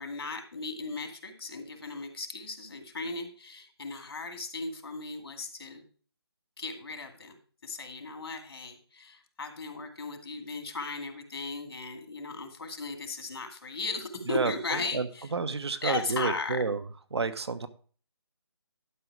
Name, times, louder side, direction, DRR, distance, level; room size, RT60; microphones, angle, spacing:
voice 1, 0.0-5.8 6.6-15.3 15.8-16.6, left 3 dB, 65° left, 6 dB, 2.2 m, -37 dB
voice 2, 14.3-15.1 15.3-16.8 17.1-17.7, right 4 dB, 75° right, 10 dB, 1.0 m, -30 dB
11.5 x 5.1 x 4.6 m, 0.42 s
figure-of-eight pair, 160°, 14 cm